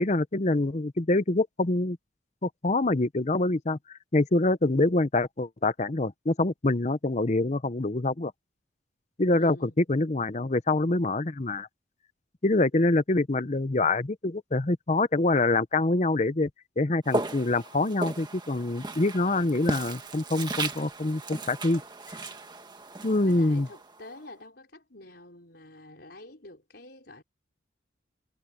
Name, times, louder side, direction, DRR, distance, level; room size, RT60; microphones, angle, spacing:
voice 1, 0.0-2.0 2.4-8.3 9.2-11.7 12.4-16.5 16.8-21.8 23.0-23.7, left 2 dB, 40° left, 0.8 m, -25 dB
voice 2, 9.4-9.7 23.2-27.2, left 2 dB, 60° left, 5.4 m, -47 dB
Walk footsteps, 17.0-24.2, right 2 dB, 25° right, 1.7 m, -36 dB
head